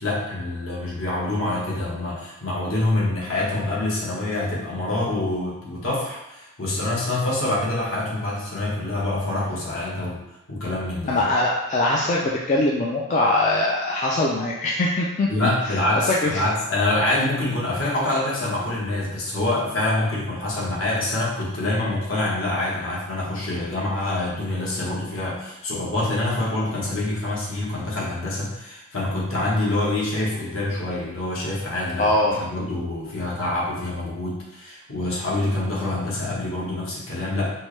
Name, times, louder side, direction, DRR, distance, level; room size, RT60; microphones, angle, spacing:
voice 1, 0.0-10.2 10.5-11.2 15.3-37.5, left 2 dB, 70° left, -6 dB, 1.2 m, -26 dB
voice 2, 11.1-15.3 16.1-16.4 32.0-32.4, left 2 dB, 35° left, -4 dB, 0.3 m, -22 dB
4.5 x 2.1 x 3.1 m, 0.90 s
head